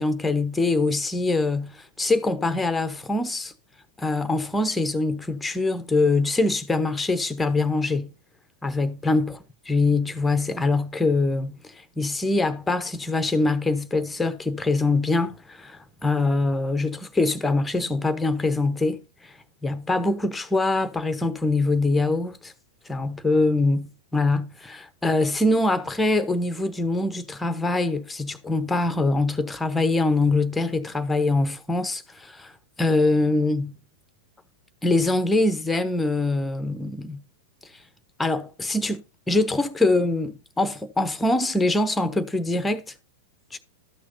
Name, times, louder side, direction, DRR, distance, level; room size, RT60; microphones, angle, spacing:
voice 1, 0.0-3.5 4.0-8.1 8.6-9.4 9.7-19.3 19.6-22.5 22.9-32.5 32.8-33.7 34.8-37.2 38.2-39.0 39.3-42.9 43.5-43.6, left 2 dB, 10° left, 0.9 m, -24 dB
13.0 x 6.2 x 2.7 m
figure-of-eight pair, 95°, 0 cm